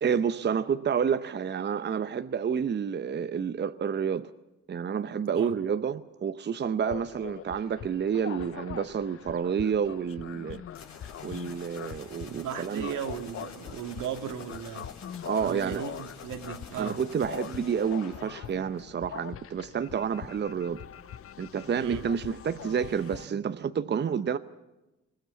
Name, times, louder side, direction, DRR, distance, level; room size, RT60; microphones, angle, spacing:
voice 1, 0.0-4.3 4.7-10.6 11.2-12.9 15.2-15.8 16.8-20.8 21.4-24.4, right 7 dB, 35° right, 0.8 m, -29 dB
sound 1, 6.9-23.3, left 10 dB, 50° left, 0.6 m, -43 dB
sound 2, 10.7-19.3, left 5 dB, 65° left, 4.5 m, -49 dB
voice 2, 12.2-14.9 15.4-17.0 21.7-22.1, right 8 dB, 80° right, 2.0 m, -36 dB
21.5 x 17.0 x 8.3 m
cardioid pair, 90°, 30 cm